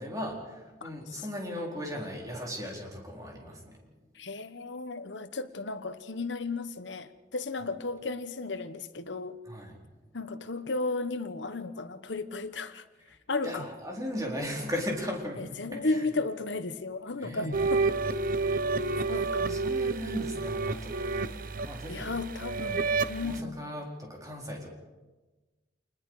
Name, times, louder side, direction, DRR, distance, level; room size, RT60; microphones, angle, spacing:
voice 1, 0.0-3.8 9.4-9.7 13.4-16.1 17.2-17.6 18.6-22.1 22.6-22.8 23.2-24.7, equal, 20° right, -1 dB, 4.4 m, -37 dB
voice 2, 4.2-9.4 10.1-12.8 13.3-13.7 15.4-17.8 19.1-19.6 21.9-23.6, left 3 dB, 75° left, 11 dB, 1.2 m, -34 dB
sound 1, 17.5-23.4, right 3 dB, 50° right, 0.8 m, -30 dB
27.5 x 20.5 x 4.9 m, 1.2 s
head